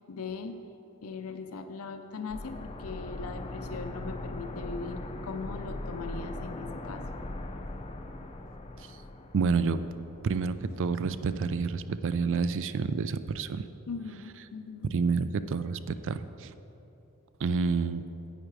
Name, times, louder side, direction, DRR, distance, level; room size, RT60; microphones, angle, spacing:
voice 1, 0.1-0.6 1.0-7.1 13.9-14.9, left 4 dB, 70° left, 7 dB, 0.5 m, -39 dB
sound 1, 2.3-11.0 11.3-11.4, left 2 dB, 25° left, 0.5 m, -40 dB
voice 2, 9.3-9.8 10.2-13.7 14.8-16.5 17.4-18.0, right 5 dB, 60° right, 13 dB, 0.4 m, -29 dB
10.5 x 8.9 x 4.7 m, 3.0 s
head